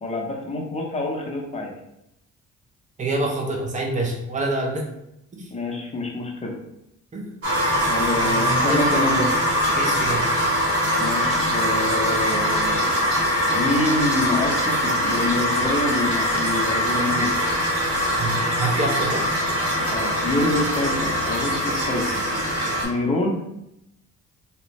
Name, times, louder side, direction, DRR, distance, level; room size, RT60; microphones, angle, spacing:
voice 1, 0.0-1.7 5.5-6.5 7.9-9.3 11.0-12.9 13.5-17.3 19.9-22.2 22.8-23.4, left 2 dB, 20° left, -1 dB, 0.6 m, -26 dB
voice 2, 3.0-4.8 5.3-5.5 7.1-7.3 7.7-7.8 8.2-9.3 9.7-10.3 18.2-19.3, right 2 dB, 25° right, 0 dB, 0.6 m, -27 dB
sound 1, 7.4-22.9, equal, 50° right, 1.0 m, -22 dB
2.4 x 2.2 x 3.1 m, 0.82 s
cardioid pair, 90°, 30 cm